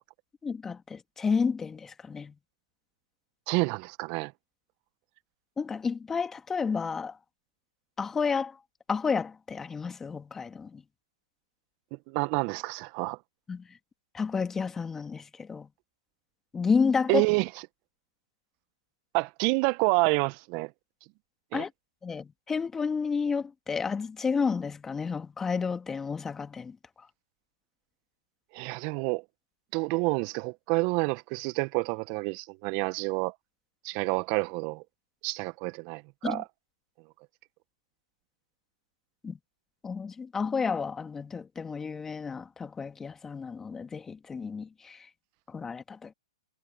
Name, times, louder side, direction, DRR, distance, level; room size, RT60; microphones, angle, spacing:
voice 1, 0.4-2.3 5.6-7.2 8.0-8.6 8.9-10.8 13.5-13.7 14.1-15.7 16.5-17.3 21.5-21.7 22.0-26.8 36.2-36.4 39.2-39.3 39.8-45.1 45.5-46.1, left 5 dB, 15° left, 2.4 m, -31 dB
voice 2, 3.5-4.3 12.1-13.2 17.1-17.5 19.1-20.7 21.5-21.6 28.5-29.2 29.7-33.3 33.8-34.8 35.2-36.4, right 28 dB, 40° right, 1.6 m, -28 dB
hypercardioid pair, 120°, 3 cm